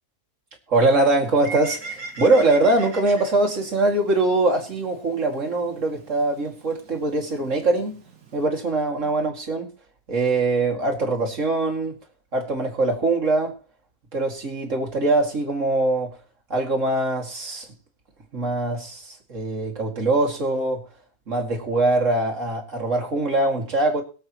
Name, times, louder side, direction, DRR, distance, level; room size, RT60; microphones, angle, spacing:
voice 1, 0.7-8.0 8.3-9.7 10.1-12.0 12.3-13.6 14.1-16.2 16.5-17.7 18.3-20.8 21.3-24.0, right 2 dB, 50° right, 1 dB, 2.6 m, -22 dB
Bird, 1.2-8.5, right 3 dB, 75° right, 2.4 m, -41 dB
22.5 x 7.9 x 3.0 m, 0.36 s
omnidirectional pair, 1.7 m